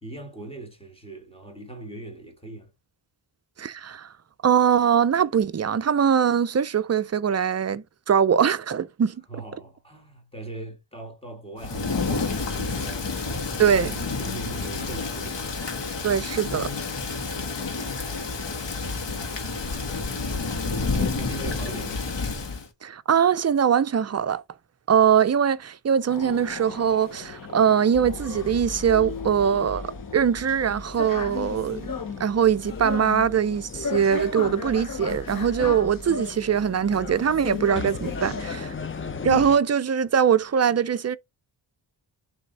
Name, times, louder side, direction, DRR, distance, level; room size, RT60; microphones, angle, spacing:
voice 1, 0.0-2.7 9.3-13.1 13.7-13.8 14.2-15.6 20.9-22.0, right 2 dB, 10° left, 2.0 m, -40 dB
voice 2, 3.6-4.1 4.4-9.2 13.6-14.0 16.0-16.7 22.8-24.4 24.9-31.9 32.2-38.7 39.2-41.2, right 8 dB, 35° right, 0.5 m, -22 dB
Thunder / Rain, 11.6-22.7, left 4 dB, 65° left, 2.0 m, -29 dB
sound 1, 26.1-39.4, left 4 dB, 45° left, 1.1 m, -36 dB
sound 2, 27.9-39.6, left 3 dB, 30° left, 0.6 m, -38 dB
7.0 x 3.4 x 4.1 m
wide cardioid pair, 155°, 45 cm